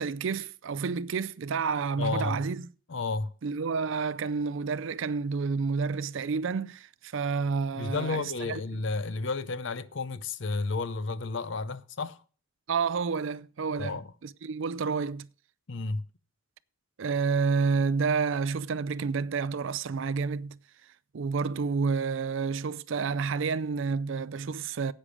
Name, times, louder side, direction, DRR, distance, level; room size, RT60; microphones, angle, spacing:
voice 1, 0.0-2.6 3.4-8.6 12.7-15.3 17.0-20.6 21.1-24.9, right 5 dB, 65° right, 0.4 m, -29 dB
voice 2, 2.0-2.4 2.9-3.3 7.7-12.2 13.8-14.1 15.7-16.0, left 3 dB, 60° left, 0.6 m, -32 dB
10.0 x 8.7 x 4.9 m
head